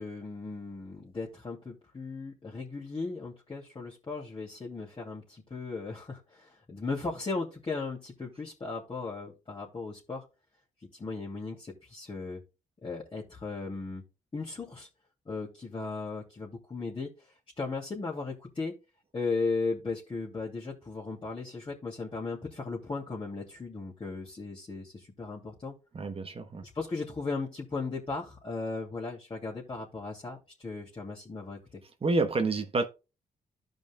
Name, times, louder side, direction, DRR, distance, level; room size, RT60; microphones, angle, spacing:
voice 1, 0.0-10.2 11.0-12.4 12.8-14.0 14.3-14.9 15.2-18.7 19.1-25.7 26.7-31.8, left 3 dB, 35° left, 2.9 m, -36 dB
voice 2, 25.9-26.6 32.0-32.9, right 3 dB, 40° right, 1.1 m, -28 dB
14.5 x 5.3 x 2.3 m
supercardioid pair, 55°, 14 cm